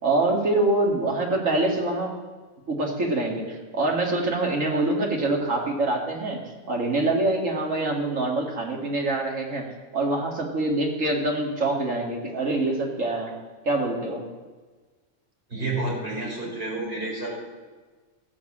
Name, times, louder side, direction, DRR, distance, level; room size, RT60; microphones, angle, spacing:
voice 1, 0.0-2.1 2.7-6.4 6.7-9.7 9.9-13.3 13.6-14.2, right 2 dB, 70° right, 0 dB, 2.5 m, -25 dB
voice 2, 15.5-17.3, right 2 dB, 45° right, -4 dB, 5.4 m, -29 dB
15.5 x 7.5 x 7.4 m, 1.3 s
omnidirectional pair, 1.4 m